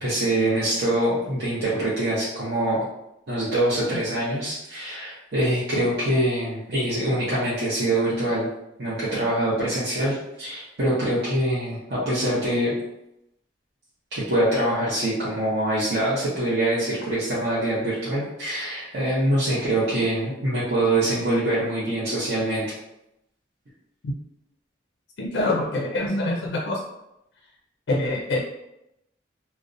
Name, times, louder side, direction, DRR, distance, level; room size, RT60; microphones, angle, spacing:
voice 1, 0.0-2.8 3.3-8.5 8.8-12.7 14.1-22.7, right 1 dB, 60° right, -10 dB, 0.7 m, -24 dB
voice 2, 25.2-26.8 27.9-28.4, left 2 dB, 70° left, -1 dB, 0.4 m, -25 dB
2.5 x 2.0 x 2.5 m, 0.84 s
head